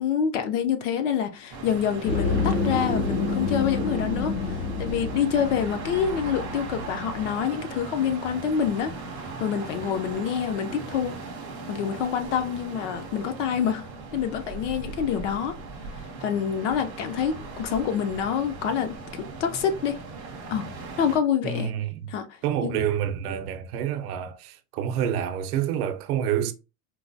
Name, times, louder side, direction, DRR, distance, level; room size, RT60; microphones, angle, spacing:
voice 1, 0.0-8.9 9.4-11.2 11.7-13.8 14.1-15.5 16.2-19.0 19.4-20.0 20.5-20.7 21.0-21.7 22.1-22.2 22.6-22.8, left 8 dB, 50° left, 0.5 m, -26 dB
sound 1, 1.5-21.2, right 3 dB, 25° right, 0.4 m, -38 dB
sound 2, 2.0-7.3, left 3 dB, 75° left, 1.2 m, -29 dB
voice 2, 21.4-22.1 22.4-26.5, right 9 dB, 70° right, 0.7 m, -28 dB
4.5 x 2.2 x 2.6 m
supercardioid pair, 180°, 47 cm